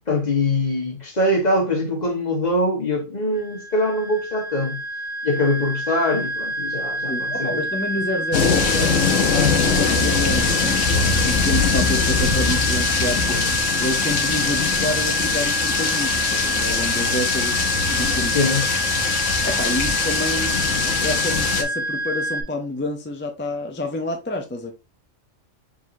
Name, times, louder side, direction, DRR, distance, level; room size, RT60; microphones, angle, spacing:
voice 1, 0.1-4.8 5.2-7.6 18.3-18.6, left 1 dB, 35° left, 1.4 m, -23 dB
sound 1, 3.3-22.4, right 1 dB, 60° right, 1.7 m, -27 dB
voice 2, 7.1-8.9 9.3-13.4 13.8-17.6 17.9-18.4 19.4-20.6 21.0-24.7, left 1 dB, 20° left, 0.3 m, -28 dB
sound 2, 8.3-21.6, left 5 dB, 90° left, 1.2 m, -22 dB
4.6 x 3.9 x 2.6 m
omnidirectional pair, 1.3 m